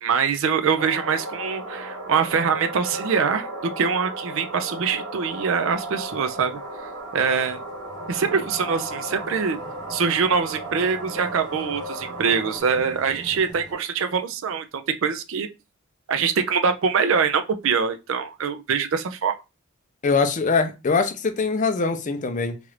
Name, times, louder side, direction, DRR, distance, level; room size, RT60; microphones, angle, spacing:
voice 1, 0.0-6.6 7.1-7.6 8.1-9.6 9.9-15.5 16.1-19.4, right 6 dB, 60° right, 0.4 m, -24 dB
sound 1, 0.8-12.6, right 1 dB, 90° right, 1.0 m, -35 dB
sound 2, 5.3-13.7, right 2 dB, 20° right, 0.9 m, -45 dB
voice 2, 20.0-22.6, left 4 dB, 35° left, 0.4 m, -22 dB
3.0 x 2.4 x 3.1 m
head